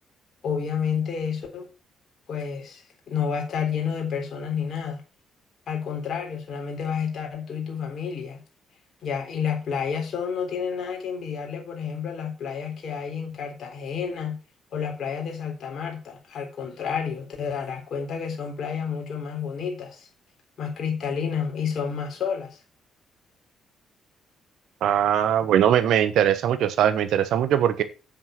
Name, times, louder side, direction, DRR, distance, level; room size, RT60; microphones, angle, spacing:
voice 1, 0.4-1.7 2.3-5.0 5.7-8.4 9.0-14.4 14.7-20.1 20.6-22.6, left 7 dB, 60° left, 3.8 m, -30 dB
voice 2, 24.8-27.8, right 10 dB, 70° right, 1.1 m, -21 dB
7.7 x 7.3 x 5.8 m
hypercardioid pair, 45°, 0 cm